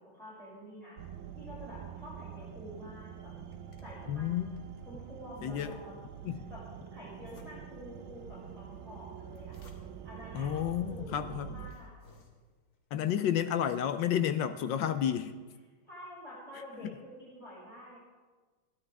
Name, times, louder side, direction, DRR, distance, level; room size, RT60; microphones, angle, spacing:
voice 1, 0.1-1.0 1.4-3.3 3.8-4.5 4.8-6.0 6.5-6.6 6.9-9.6 10.0-10.5 10.9-11.9 15.8-18.0, equal, ahead, -9 dB, 6.0 m, -48 dB
sound 1, 1.0-11.7, right 8 dB, 70° right, 1.5 m, -46 dB
sound 2, 3.4-4.9 5.3-6.2 7.1-7.9 9.1-10.2 10.9-11.0 11.5-12.8, left 2 dB, 45° left, 2.0 m, -60 dB
voice 2, 4.1-4.5 5.4-5.7 6.2-6.5 10.3-11.6 12.9-15.3 16.8-16.9, left 10 dB, 70° left, 11 dB, 1.2 m, -31 dB
22.0 x 13.5 x 3.5 m, 1.4 s
omnidirectional pair, 2.4 m